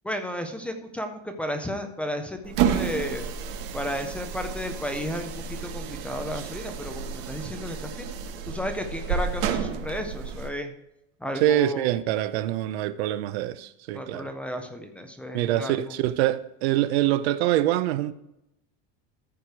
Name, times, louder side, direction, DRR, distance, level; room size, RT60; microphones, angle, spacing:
voice 1, 0.0-3.3 3.7-8.1 8.5-10.7 11.2-11.9 13.9-15.9, equal, 5° left, 0.4 m, -33 dB
sound 1, 2.4-10.5, right 7 dB, 55° right, 1.2 m, -31 dB
voice 2, 11.4-14.3 15.3-18.1, right 13 dB, 85° right, 0.8 m, -25 dB
14.0 x 4.9 x 4.6 m
cardioid pair, 175°, 32 cm